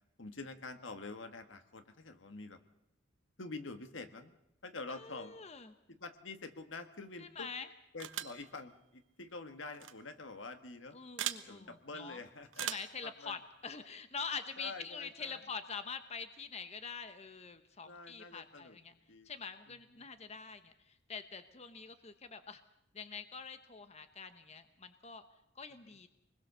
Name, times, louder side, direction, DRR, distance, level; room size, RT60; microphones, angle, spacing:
voice 1, 0.2-2.6 3.4-4.3 4.6-5.4 5.9-7.5 7.9-11.0 11.5-12.7 13.0-13.4 14.6-15.4 17.8-19.3 20.0-20.1 25.8-26.0, left 3 dB, 75° left, 8 dB, 1.6 m, -47 dB
voice 2, 4.9-5.7 7.2-7.7 10.9-12.2 12.6-18.9 19.2-22.6 22.9-25.2 25.5-26.1, left 5 dB, 35° left, 9 dB, 1.0 m, -45 dB
sound 1, 8.0-8.4 9.7-9.9 11.2-11.4 12.5-13.0, right 10 dB, 80° right, 1.2 m, -39 dB
25.0 x 21.0 x 6.8 m, 0.83 s
head